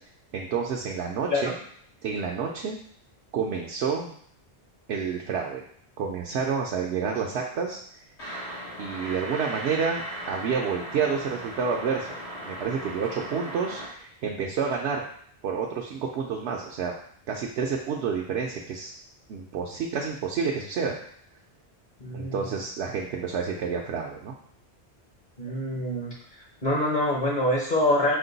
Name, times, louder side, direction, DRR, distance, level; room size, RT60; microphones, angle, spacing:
voice 1, 0.3-1.6 2.0-2.8 3.3-4.1 4.9-5.6 6.0-7.8 8.8-12.2 12.4-15.1 15.4-16.9 17.3-18.9 19.3-21.0 22.1-24.4, right 6 dB, 80° right, -1 dB, 0.9 m, -29 dB
sound 1, 8.2-13.9, right 1 dB, 80° left, 1.6 m, -37 dB
voice 2, 22.0-22.5 25.4-26.1 26.6-28.2, left 1 dB, 45° left, -3 dB, 1.0 m, -25 dB
5.1 x 2.2 x 3.9 m, 0.62 s
omnidirectional pair, 1.1 m